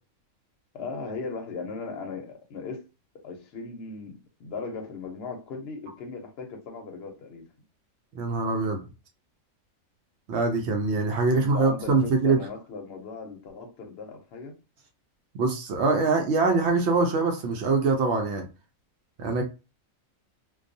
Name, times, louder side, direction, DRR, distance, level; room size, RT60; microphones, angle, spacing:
voice 1, 0.7-2.8 3.2-7.5 11.3-14.5, left 4 dB, 60° left, 0.8 m, -38 dB
voice 2, 8.1-8.8 10.3-12.4 15.3-18.5 19.2-19.4, right 3 dB, 65° right, 0.7 m, -23 dB
2.3 x 2.3 x 2.6 m
omnidirectional pair, 1.4 m